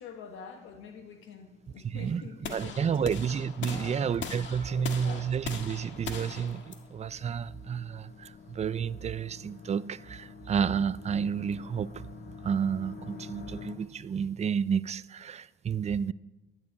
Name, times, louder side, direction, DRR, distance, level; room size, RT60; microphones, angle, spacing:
voice 1, 0.0-3.2 3.7-4.1 4.7-5.4, left 6 dB, 85° left, 1.5 m, -46 dB
sound 1, 0.9-13.8, left 5 dB, 50° left, 2.3 m, -49 dB
sound 2, 2.4-8.5, left 6 dB, 70° left, 1.7 m, -41 dB
voice 2, 2.5-12.0 12.4-16.1, right 7 dB, 35° right, 0.5 m, -31 dB
12.0 x 7.6 x 8.5 m
cardioid pair, 90°, 20 cm